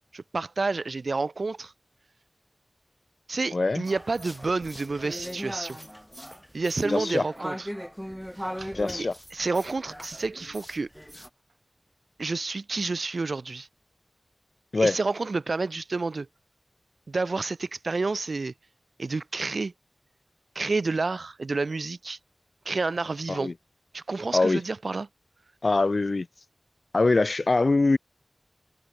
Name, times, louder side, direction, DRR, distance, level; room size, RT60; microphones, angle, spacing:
voice 1, 0.1-1.7 3.3-5.8 6.5-7.7 8.4-9.1 9.3-10.9 12.2-13.7 14.7-16.3 17.1-18.5 19.0-19.7 20.5-22.2 22.6-23.5 23.9-25.1, right 3 dB, 85° right, 0.9 m, -29 dB
voice 2, 3.5-3.8 6.9-7.2 8.7-9.1 14.7-15.0 23.3-23.5 24.3-24.6 25.6-26.3 26.9-28.0, left 3 dB, 70° left, 0.3 m, -23 dB
sound 1, 3.9-11.3, equal, ahead, 1.8 m, -38 dB
wide cardioid pair, 45°, 0 cm